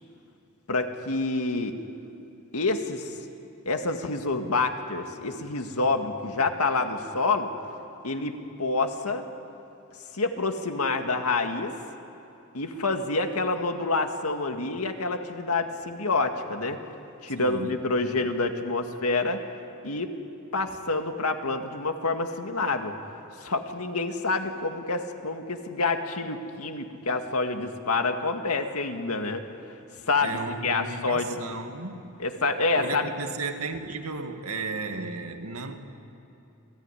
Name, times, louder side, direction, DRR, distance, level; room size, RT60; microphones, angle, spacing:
voice 1, 0.7-1.8 2.5-3.1 3.7-7.5 8.0-9.2 10.1-11.8 12.5-16.8 17.2-19.4 19.8-20.2 20.5-23.0 23.4-29.4 30.1-30.4 30.6-31.4 32.2-33.1, left 3 dB, 90° left, 2.0 m, -27 dB
voice 2, 17.4-17.8 30.2-32.1 32.8-35.8, right 3 dB, 85° right, 2.0 m, -34 dB
28.5 x 18.5 x 10.0 m
head